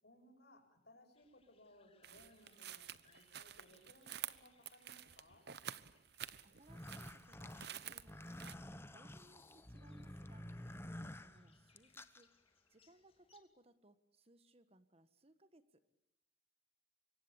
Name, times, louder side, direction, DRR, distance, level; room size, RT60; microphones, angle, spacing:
voice 1, 0.0-5.5, left 1 dB, 55° left, 4 dB, 7.6 m, -64 dB
sound 1, 1.1-13.4, left 5 dB, 30° left, 2.9 m, -75 dB
sound 2, 2.0-8.5, right 10 dB, 55° right, 1.1 m, -50 dB
voice 2, 6.4-8.6 8.9-10.5 10.8-12.3 12.7-15.9, right 1 dB, 30° right, 12 dB, 1.4 m, -66 dB
sound 3, 6.6-12.2, left 1 dB, 10° left, 1.1 m, -51 dB
26.0 x 23.5 x 8.7 m, 0.82 s
head